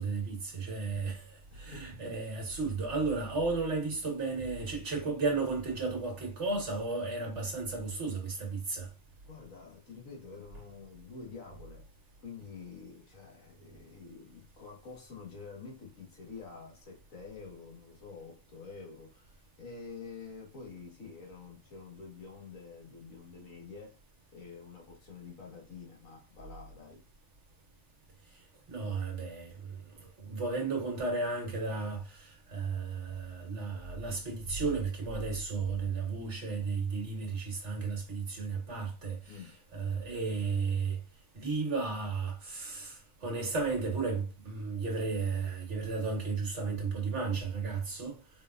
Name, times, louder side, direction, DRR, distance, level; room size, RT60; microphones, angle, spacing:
voice 1, 0.0-8.9 28.7-29.8 30.2-41.0 41.3-48.2, right 4 dB, 60° right, 1.7 m, -34 dB
voice 2, 1.5-2.0 9.2-11.9 12.2-24.0 24.3-27.0 39.3-39.6, left 5 dB, 80° left, 2.0 m, -48 dB
4.8 x 3.6 x 2.5 m
omnidirectional pair, 1.4 m